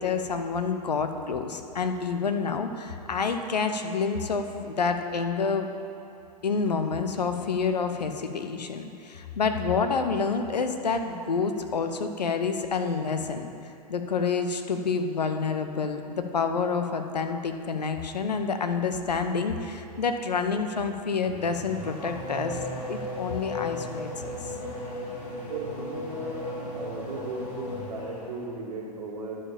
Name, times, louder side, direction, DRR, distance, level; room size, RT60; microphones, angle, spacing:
voice 1, 0.0-5.7 6.4-13.5 13.9-22.6 22.9-24.4, left 5 dB, 75° left, 7 dB, 0.8 m, -28 dB
Race car auto racing / Accelerating revving vroom, 21.2-28.4, left 1 dB, 35° left, 2.5 m, -36 dB
voice 2, 25.5-26.5 26.7-29.4, right 3 dB, 60° right, -1 dB, 1.7 m, -36 dB
11.0 x 5.0 x 7.0 m, 2.6 s
figure-of-eight pair, 95°, 21 cm